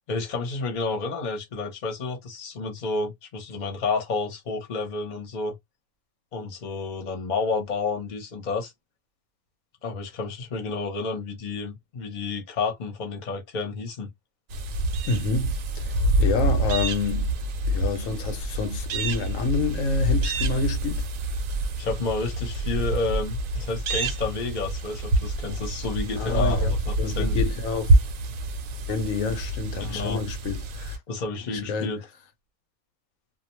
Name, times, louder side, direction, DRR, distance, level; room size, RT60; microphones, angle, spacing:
voice 1, 0.1-5.6 6.3-8.7 9.8-14.1 21.8-27.4 29.8-30.2 31.1-32.0, left 4 dB, 40° left, 0.9 m, -30 dB
sound 1, 14.5-31.0, right 1 dB, 80° right, 1.0 m, -26 dB
voice 2, 15.1-17.4 17.7-21.4 26.1-28.0 28.9-31.0 31.3-32.0, left 4 dB, 80° left, 1.0 m, -29 dB
2.4 x 2.2 x 2.9 m
omnidirectional pair, 1.4 m